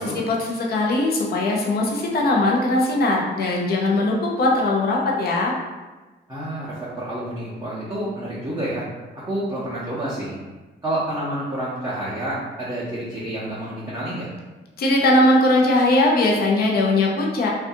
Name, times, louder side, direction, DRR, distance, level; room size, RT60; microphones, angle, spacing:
voice 1, 0.0-5.5 14.8-17.5, left 2 dB, 50° left, -2 dB, 0.6 m, -20 dB
voice 2, 6.3-8.8 9.2-10.4 10.8-14.3, right 1 dB, 15° right, -10 dB, 0.7 m, -29 dB
2.5 x 2.3 x 2.6 m, 1.2 s
cardioid pair, 90°, 20 cm